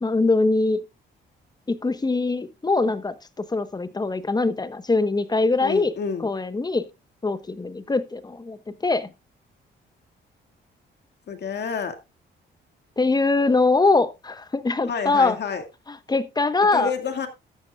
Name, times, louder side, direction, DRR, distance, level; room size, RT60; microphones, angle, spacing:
voice 1, 0.0-0.8 1.7-5.9 6.2-6.9 7.2-9.1 13.0-15.4 15.9-16.9, left 3 dB, 20° left, 1.1 m, -22 dB
voice 2, 5.6-6.3 11.3-12.0 14.9-15.6 16.7-17.3, left 6 dB, 60° left, 2.2 m, -29 dB
13.5 x 10.5 x 2.4 m
cardioid pair, 90°, 20 cm